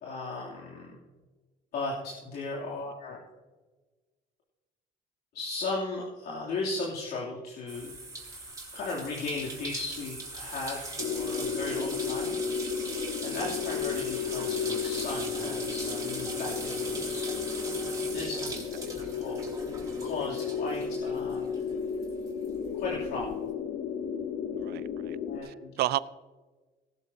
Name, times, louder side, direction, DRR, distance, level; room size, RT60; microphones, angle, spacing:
voice 1, 0.0-1.0 1.7-3.2 5.3-12.4 12.9-17.7 18.0-18.5 19.0-19.5 19.8-21.5 22.7-23.4 25.3-25.7, left 3 dB, 65° left, 3.1 m, -37 dB
sound 1, 7.7-21.7 22.0-23.3, right 2 dB, 20° right, 4.5 m, -40 dB
sound 2, 11.0-25.4, left 6 dB, 90° left, 1.4 m, -33 dB
voice 2, 24.5-25.2 25.4-26.0, right 15 dB, 70° right, 0.6 m, -32 dB
18.5 x 12.0 x 2.8 m
cardioid pair, 110°, 17 cm